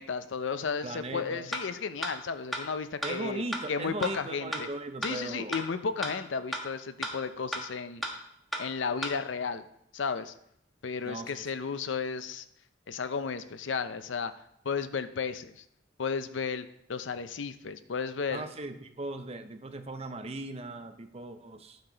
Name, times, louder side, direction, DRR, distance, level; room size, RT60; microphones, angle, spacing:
voice 1, 0.0-4.7 5.0-8.0 8.6-9.7 9.9-10.3 10.8-12.5 12.9-14.3 14.6-15.6 16.0-18.4, left 5 dB, 80° left, 12 dB, 0.6 m, -33 dB
voice 2, 0.8-1.5 3.0-5.6 11.0-11.4 18.3-21.8, right 2 dB, 35° right, 8 dB, 0.6 m, -38 dB
sound 1, 1.5-1.6 2.0-2.1 2.5-2.6 3.0-3.1 3.5-3.6 4.0-4.1 4.5-4.6 5.0-5.1 5.5-5.6 6.0-6.1 6.5-6.6 7.0-7.1 7.5-7.6 8.0-8.1 8.5-8.6 9.0-9.1, equal, ahead, 1.2 m, -32 dB
9.5 x 6.6 x 3.9 m, 0.72 s
head